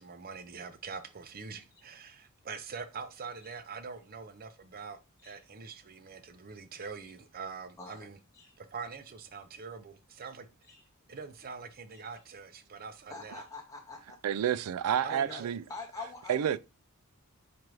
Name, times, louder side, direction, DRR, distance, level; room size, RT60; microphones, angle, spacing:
voice 1, 0.0-8.2 8.6-10.5 11.1-13.4 15.0-15.6, right 5 dB, 45° right, 0.6 m, -44 dB
voice 2, 7.8-8.1 8.3-8.6 10.7-10.8 13.1-14.2 15.1-15.4 15.7-16.6, left 3 dB, 15° left, 0.8 m, -45 dB
voice 3, 14.2-15.6 16.3-16.6, right 9 dB, 85° right, 0.4 m, -29 dB
4.5 x 2.5 x 4.7 m
head